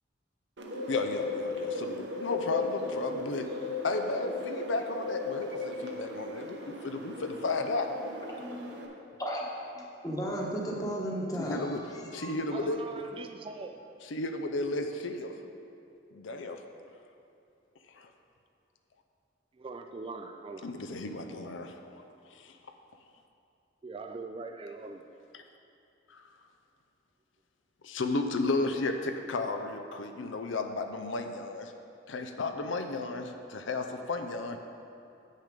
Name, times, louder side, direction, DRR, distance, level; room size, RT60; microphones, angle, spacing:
Bird, 0.6-8.9, left 3 dB, 65° right, 0.9 m, -37 dB
voice 1, 0.9-3.5 3.8-7.9 11.4-11.8 12.1-12.8 14.1-15.3 16.1-16.6 18.0-18.1 20.6-21.7 22.4-22.5 25.3-25.4 26.1-26.2 27.8-31.7 32.1-34.6, left 3 dB, 85° left, 6 dB, 0.6 m, -33 dB
voice 2, 8.4-8.7 9.2-9.4 9.7-11.8 12.1-12.3, equal, 20° left, -3 dB, 1.1 m, -34 dB
voice 3, 12.5-13.8 19.5-20.7 23.8-25.0, right 3 dB, 30° right, 5 dB, 0.3 m, -42 dB
8.2 x 6.5 x 5.1 m, 2.6 s
head